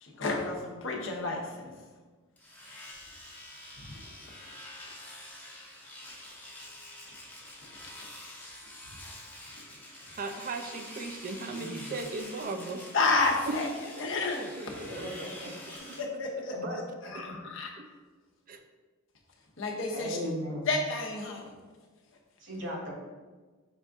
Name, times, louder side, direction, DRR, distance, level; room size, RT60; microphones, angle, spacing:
voice 1, 0.0-1.7 3.8-3.9 8.0-8.1 12.9-13.7 14.0-14.5 16.0-16.5 17.1-17.7 19.6-20.2 20.7-21.5, left 3 dB, 65° left, 0 dB, 0.8 m, -30 dB
Domestic sounds home sounds, 2.4-16.0, left 1 dB, 10° left, 0.7 m, -47 dB
voice 2, 10.1-12.8 13.5-13.6 14.0-15.1 15.9-16.0 17.8-17.9 18.5-18.6, right 3 dB, 40° right, 6 dB, 0.4 m, -37 dB
voice 3, 11.5-11.8 14.9-15.5 16.5-16.8 17.2-17.3 19.9-20.7 22.4-22.9, equal, 65° right, -2 dB, 1.1 m, -37 dB
5.3 x 2.5 x 3.5 m, 1.3 s
head